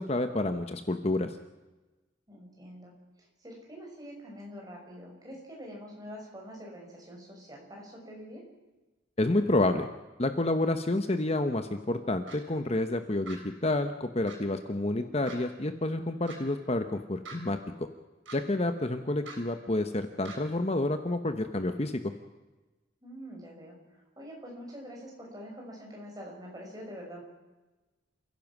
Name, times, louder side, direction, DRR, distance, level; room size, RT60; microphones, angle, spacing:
voice 1, 0.0-1.3 9.2-9.9 10.2-17.9 18.3-22.1, left 2 dB, 30° left, 8 dB, 1.0 m, -29 dB
voice 2, 2.3-8.4 23.0-27.2, equal, 20° right, -1 dB, 6.2 m, -45 dB
sound 1, 12.3-12.4 13.2-13.4 14.3-14.4 15.2-15.4 16.2-16.4 17.2-17.4 18.2-18.4 19.2-19.4 20.2-20.4, right 4 dB, 75° right, 6.7 m, -44 dB
28.5 x 16.0 x 6.2 m, 1.1 s
head